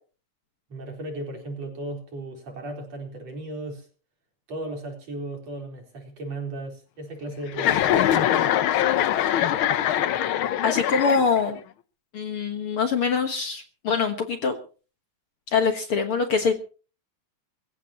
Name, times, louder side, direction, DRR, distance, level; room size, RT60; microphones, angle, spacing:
voice 1, 0.7-3.9 4.5-8.0, right 2 dB, 55° right, 2 dB, 5.2 m, -36 dB
Chuckle chortle, 7.5-11.6, left 11 dB, 85° left, 1.1 m, -23 dB
voice 2, 10.6-11.6 12.1-14.5 15.5-16.5, left 5 dB, 55° left, 6 dB, 2.0 m, -24 dB
23.5 x 15.0 x 3.0 m, 0.37 s
omnidirectional pair, 3.5 m